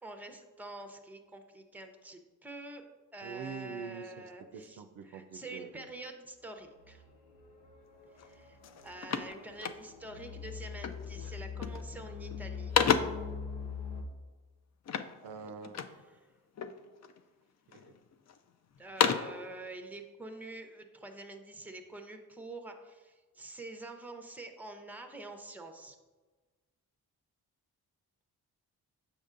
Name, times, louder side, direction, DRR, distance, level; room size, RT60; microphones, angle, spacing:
voice 1, 0.0-2.8 3.1-7.0 8.2-8.6 8.8-12.7 16.1-16.3 18.8-26.0, right 2 dB, 5° right, 6 dB, 0.7 m, -46 dB
voice 2, 3.2-4.2 4.5-5.9 15.2-15.9 17.7-17.9, right 6 dB, 75° right, 8 dB, 0.5 m, -44 dB
sound 1, 6.8-14.0, left 6 dB, 85° left, 0.8 m, -43 dB
sound 2, 8.2-8.3 8.6-10.2 10.8-11.1 11.5-12.0 12.3-13.3 14.8-16.0 16.6-17.2 17.7-18.4 18.7-19.4, left 7 dB, 45° left, 0.4 m, -32 dB
7.2 x 5.2 x 2.5 m, 1.3 s
supercardioid pair, 55°, 40 cm